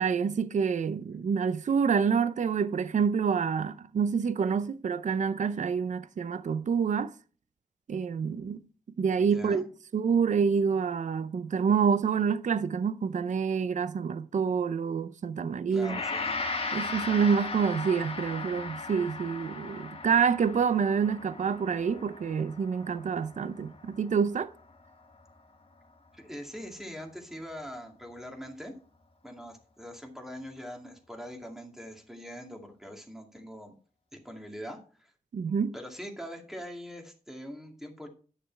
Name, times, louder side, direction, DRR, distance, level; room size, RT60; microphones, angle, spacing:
voice 1, 0.0-7.1 7.9-8.6 9.0-9.7 9.9-16.0 16.7-24.5 35.3-35.7, right 6 dB, 60° right, 0.6 m, -27 dB
voice 2, 9.2-9.6 15.7-16.4 26.1-28.7 29.2-33.7 34.1-35.1 35.7-38.1, equal, 5° right, 2.2 m, -43 dB
Gong, 15.8-25.0, left 3 dB, 40° left, 1.6 m, -37 dB
10.0 x 6.8 x 4.5 m
wide cardioid pair, 90°, 14 cm